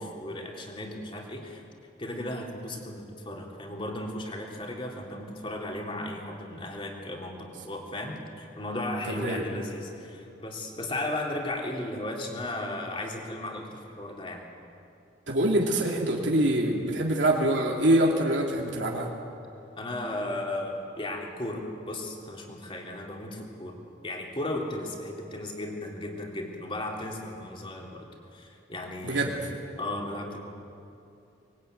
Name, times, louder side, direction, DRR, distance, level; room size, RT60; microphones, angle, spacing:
voice 1, 0.0-1.6 2.0-14.4 19.8-23.8 24.0-30.4, left 1 dB, 30° left, 0 dB, 3.3 m, -35 dB
voice 2, 9.1-9.4 15.3-19.1 29.0-29.3, right 1 dB, 75° right, -1 dB, 2.9 m, -25 dB
24.5 x 20.5 x 9.4 m, 2.7 s
head